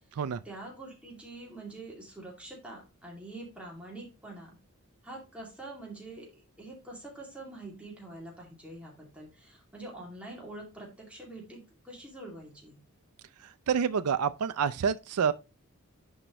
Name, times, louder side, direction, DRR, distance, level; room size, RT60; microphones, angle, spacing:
voice 1, 0.4-4.6 5.0-12.8, right 2 dB, 5° right, 2.3 m, -45 dB
voice 2, 13.7-15.3, right 7 dB, 85° right, 0.4 m, -27 dB
10.0 x 4.6 x 3.0 m
head